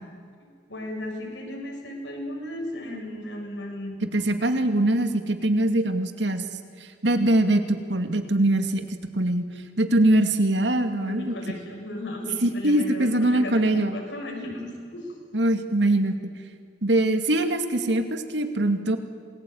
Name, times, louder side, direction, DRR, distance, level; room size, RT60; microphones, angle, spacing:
voice 1, 0.7-4.0 11.0-15.1, left 1 dB, 85° left, 1 dB, 7.0 m, -35 dB
voice 2, 4.1-6.4 7.0-8.9 9.2-9.4 9.8-11.4 12.4-14.0 15.3-16.1 16.8-19.0, right 1 dB, 80° right, 7 dB, 2.4 m, -22 dB
27.5 x 21.0 x 9.5 m, 2.2 s
head